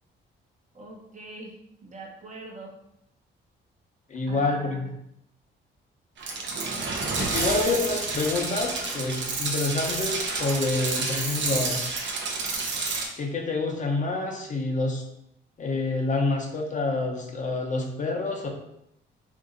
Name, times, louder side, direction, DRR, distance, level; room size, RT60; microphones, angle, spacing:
voice 1, 0.7-1.6 1.8-2.7 4.3-4.8, right 3 dB, 40° right, -1 dB, 0.9 m, -42 dB
voice 2, 4.1-4.9 7.1-11.8 13.2-15.0 15.6-18.5, left 3 dB, 40° left, 2 dB, 0.6 m, -27 dB
sound 1, 6.2-13.1, right 3 dB, 65° right, 0.8 m, -29 dB
2.9 x 2.6 x 3.8 m, 0.79 s
cardioid pair, 90°, 20 cm